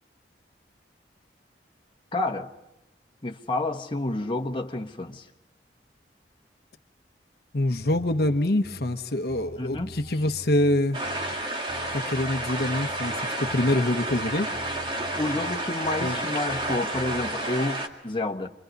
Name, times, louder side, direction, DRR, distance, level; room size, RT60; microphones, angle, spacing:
voice 1, 2.1-2.5 3.2-5.2 9.6-10.0 15.1-18.5, left 2 dB, 30° left, 1.3 m, -29 dB
voice 2, 7.5-11.0 11.9-14.5 16.0-16.2, left 1 dB, 60° left, 1.1 m, -25 dB
Bass guitar, 7.8-9.0 9.3-11.4 11.7-13.8 14.1-16.2 16.5-17.4, right 1 dB, 70° right, 2.1 m, -44 dB
sound 1, 8.7-14.8, right 1 dB, 5° right, 7.8 m, -60 dB
sound 2, 10.9-17.9, right 1 dB, 30° right, 2.1 m, -31 dB
29.0 x 24.0 x 5.3 m
head